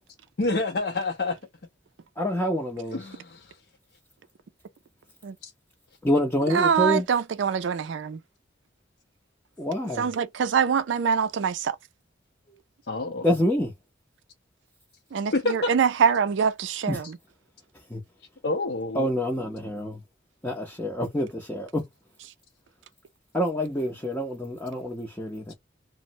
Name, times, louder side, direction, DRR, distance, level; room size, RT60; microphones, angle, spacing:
voice 1, 0.4-1.4 2.9-3.6 5.4-5.5 12.9-13.3 15.3-15.7 18.4-19.1, left 2 dB, 60° left, 0.5 m, -28 dB
voice 2, 2.2-3.0 6.0-7.1 9.6-10.1 13.2-13.7 16.9-17.0 17.9-18.0 18.9-20.0 20.4-21.8 23.3-25.5, equal, 10° left, 0.5 m, -27 dB
voice 3, 6.5-8.2 10.0-11.8 15.1-17.2, right 6 dB, 75° right, 0.4 m, -24 dB
3.1 x 2.0 x 2.6 m
head